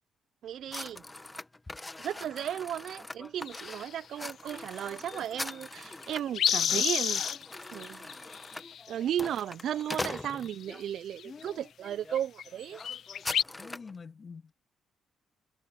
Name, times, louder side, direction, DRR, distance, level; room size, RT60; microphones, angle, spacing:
voice 1, 0.4-1.0 2.0-7.2 7.7-8.1 8.9-12.8, right 10 dB, 70° right, 0.4 m, -35 dB
sound 1, 0.7-10.8 11.4-11.7 12.0-12.2 12.4-13.9, left 2 dB, 15° left, 1.1 m, -42 dB
sound 2, 3.5-4.0 5.1-5.2 5.5-5.6 5.8-7.5 7.8-8.9 10.0-10.2 10.5-11.5 11.9-12.0 12.1-12.5 12.8-13.4, left 9 dB, 65° left, 0.4 m, -30 dB
voice 2, 11.2-11.7 13.6-14.5, left 5 dB, 40° left, 1.8 m, -46 dB
cardioid pair, 90°, 0 cm